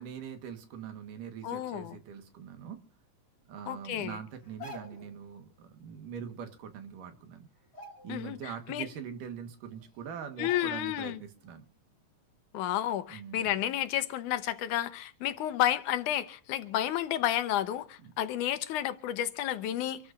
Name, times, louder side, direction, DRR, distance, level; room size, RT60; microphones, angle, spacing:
voice 1, 0.0-2.8 3.5-7.5 8.0-11.6 13.1-13.5 18.0-18.1, right 8 dB, 80° right, 3.1 m, -43 dB
voice 2, 1.4-2.0 3.7-4.2 8.1-8.9 10.4-11.2 12.5-20.0, left 12 dB, 80° left, 2.2 m, -31 dB
sound 1, 4.4-5.2 6.6-6.7 7.0-7.3 7.6-8.5 8.9-9.0 9.7-9.8 10.4-11.0 11.4-11.5, left 2 dB, 20° left, 2.1 m, -47 dB
26.5 x 13.5 x 2.6 m
omnidirectional pair, 3.7 m